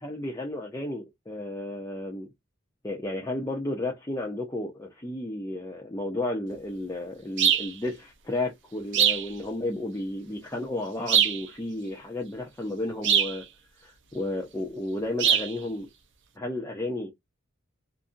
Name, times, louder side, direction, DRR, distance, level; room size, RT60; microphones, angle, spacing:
voice 1, 0.0-2.3 2.8-13.4 13.8-15.9 16.4-17.1, left 1 dB, 15° left, 0.6 m, -33 dB
sound 1, 7.4-7.7 8.9-9.3 11.1-11.4 13.0-13.4 15.2-15.5, right 8 dB, 55° right, 0.5 m, -22 dB
2.6 x 2.6 x 2.4 m
head